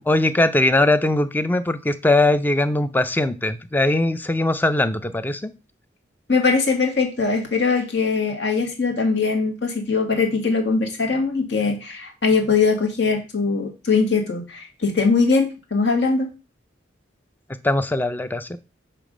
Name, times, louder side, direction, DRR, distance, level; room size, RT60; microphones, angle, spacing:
voice 1, 0.0-5.5 17.6-18.6, left 2 dB, 10° left, 12 dB, 0.4 m, -20 dB
voice 2, 6.3-16.3, left 4 dB, 65° left, 3 dB, 1.5 m, -21 dB
6.9 x 3.3 x 5.0 m, 0.31 s
head